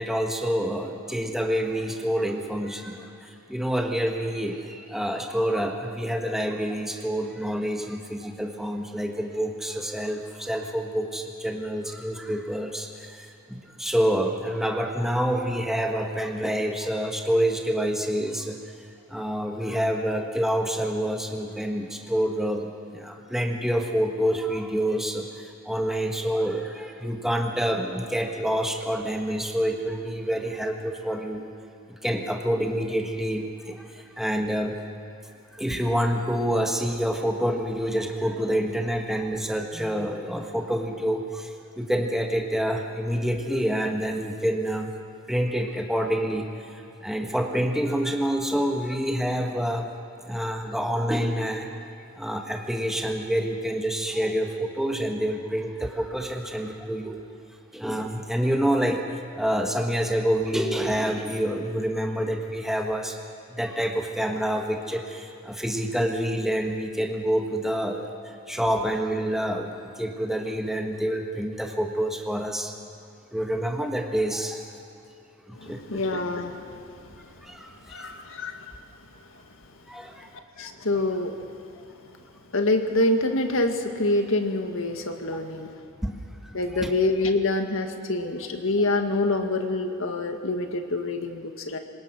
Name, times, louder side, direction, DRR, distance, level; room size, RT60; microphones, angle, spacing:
voice 1, 0.0-18.6 19.1-31.5 32.0-34.8 35.5-44.9 45.3-49.9 50.2-51.9 52.1-57.2 57.7-63.2 63.5-72.7 73.3-74.7 75.5-76.0 77.4-78.2 79.9-80.3 86.0-86.2 86.7-86.9, equal, ahead, 2 dB, 1.5 m, -27 dB
voice 2, 75.6-77.1 77.9-78.7 80.6-81.4 82.5-85.7 86.5-91.8, left 2 dB, 65° left, 5 dB, 1.9 m, -26 dB
26.0 x 20.5 x 6.2 m, 2.7 s
head